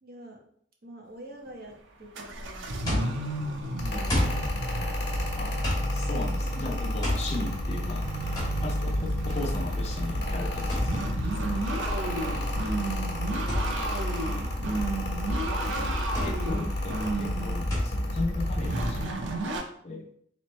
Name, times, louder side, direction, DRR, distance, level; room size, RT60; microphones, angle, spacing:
voice 1, 0.0-0.4 0.8-4.6 12.2-13.1, right 1 dB, 55° right, 0 dB, 0.9 m, -47 dB
sound 1, 1.5-1.7 2.2-19.6, right 2 dB, 85° right, 0.6 m, -34 dB
sound 2, 2.3-19.6, left 1 dB, 20° left, 1.5 m, -35 dB
Mechanical fan, 3.8-19.1, left 1 dB, 60° left, 1.0 m, -31 dB
voice 2, 5.9-8.1 8.6-11.4 14.2-14.5 16.2-19.4 19.8-20.1, left 2 dB, 35° left, 1 dB, 0.5 m, -36 dB
4.0 x 3.1 x 3.1 m, 0.65 s
head